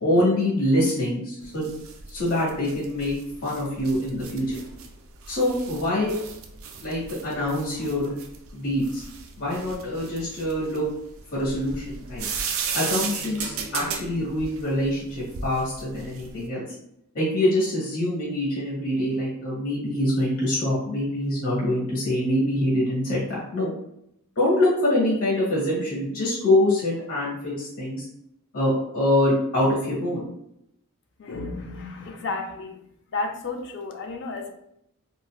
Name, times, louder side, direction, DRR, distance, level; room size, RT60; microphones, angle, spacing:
voice 1, 0.0-1.7 2.1-3.1 3.4-4.6 5.3-6.1 6.8-8.1 8.5-9.0 9.4-10.8 11.3-12.2 12.7-16.6 17.1-23.7 24.4-28.0 28.5-30.2, left 1 dB, 80° left, -6 dB, 1.1 m, -24 dB
sound 1, 1.4-16.4, right 5 dB, 65° right, 0.4 m, -36 dB
voice 2, 31.2-32.9 33.1-34.5, left 3 dB, 55° left, 3 dB, 0.4 m, -32 dB
3.8 x 2.1 x 2.3 m, 0.77 s
head